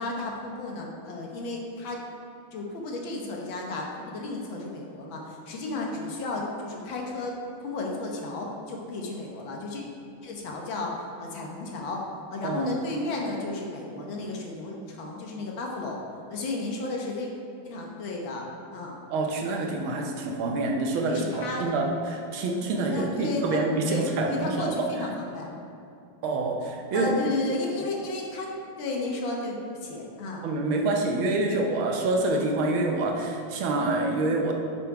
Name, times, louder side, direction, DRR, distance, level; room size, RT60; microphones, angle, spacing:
voice 1, 0.0-2.0 2.5-7.3 7.6-9.8 10.2-12.0 12.3-16.0 16.3-17.3 17.6-18.4 18.7-19.0 21.1-21.6 22.9-25.6 26.9-28.5 28.8-30.5, left 2 dB, 65° left, -1 dB, 1.6 m, -33 dB
voice 2, 12.4-12.8 19.1-25.2 26.2-27.2 30.4-34.5, right 2 dB, 75° right, 1 dB, 1.6 m, -27 dB
6.9 x 5.5 x 4.8 m, 2.7 s
omnidirectional pair, 2.4 m